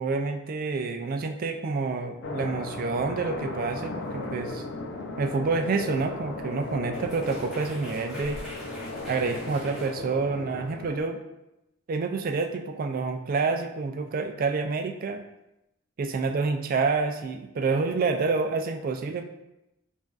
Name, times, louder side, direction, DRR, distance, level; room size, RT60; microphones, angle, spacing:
voice 1, 0.0-4.6 5.2-8.4 9.1-11.2 11.9-15.2 16.0-19.2, right 4 dB, 45° right, 6 dB, 0.3 m, -28 dB
sound 1, 2.2-11.0, left 2 dB, 60° left, 0.4 m, -36 dB
sound 2, 6.3-6.4 6.6-9.9, equal, ahead, 1.3 m, -44 dB
4.8 x 2.5 x 2.3 m, 0.90 s
head